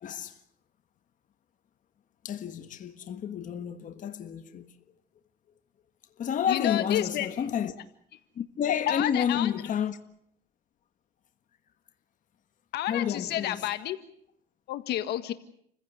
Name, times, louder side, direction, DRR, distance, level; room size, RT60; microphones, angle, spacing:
voice 1, 0.0-0.4 2.2-4.7 6.2-7.7 8.4-10.0 12.9-13.6, left 8 dB, 50° left, 1.5 m, -30 dB
voice 2, 6.5-7.3 8.7-9.5 12.7-14.0 14.7-15.3, left 12 dB, 75° left, 1.7 m, -30 dB
29.0 x 16.0 x 8.0 m
cardioid pair, 110°, 17 cm